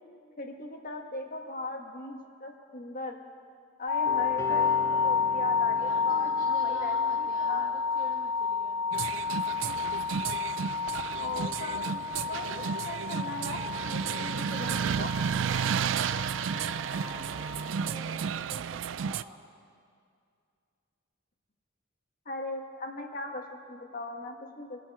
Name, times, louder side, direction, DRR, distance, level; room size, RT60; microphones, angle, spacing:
voice 1, 0.4-3.2 3.8-7.7 11.2-13.6 13.8-15.1 22.2-24.8, left 2 dB, 45° left, 3 dB, 1.6 m, -39 dB
sound 1, 3.9-17.9, left 5 dB, 80° left, 0.4 m, -31 dB
sound 2, 4.1-8.2 9.0-9.1, left 2 dB, 15° left, 0.4 m, -43 dB
voice 2, 5.7-8.9 16.4-19.5, left 1 dB, 5° right, -7 dB, 1.8 m, -49 dB
sound 3, 8.9-19.2, right 7 dB, 70° right, 0.3 m, -32 dB
26.0 x 8.8 x 4.9 m, 2.3 s
head